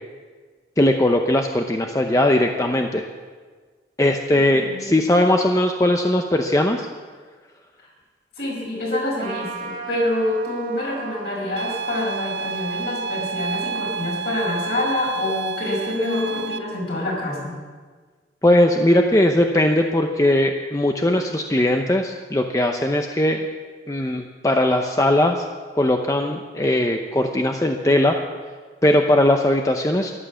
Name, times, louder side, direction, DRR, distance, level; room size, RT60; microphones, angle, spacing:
voice 1, 0.8-3.0 4.0-6.9 18.4-23.4 23.9-25.5 25.7-28.2 28.8-30.1, left 1 dB, 15° left, 4 dB, 0.6 m, -19 dB
voice 2, 4.5-4.9 8.4-17.5, left 1 dB, 60° left, -2 dB, 5.2 m, -26 dB
Trumpet, 9.2-15.0, right 4 dB, 45° right, 1.7 m, -38 dB
sound 1, 11.6-16.6, right 4 dB, 60° right, 0.6 m, -30 dB
14.0 x 11.5 x 7.0 m, 1.5 s
head